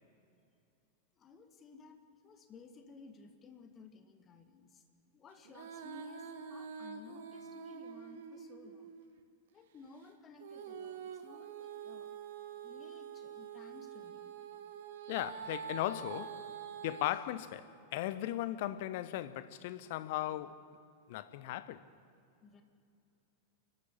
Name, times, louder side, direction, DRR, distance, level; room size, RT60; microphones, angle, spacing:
voice 1, 1.2-4.8 5.1-8.9 9.5-12.2 12.6-14.3 22.4-22.6, left 4 dB, 25° left, 1.8 m, -56 dB
Female singing, 5.4-9.2 10.4-17.1, right 6 dB, 55° right, 1.5 m, -46 dB
voice 2, 15.1-16.5 16.8-20.7 21.1-21.9, left 14 dB, 50° left, 0.8 m, -37 dB
28.5 x 12.0 x 8.5 m
figure-of-eight pair, 90°, 0 cm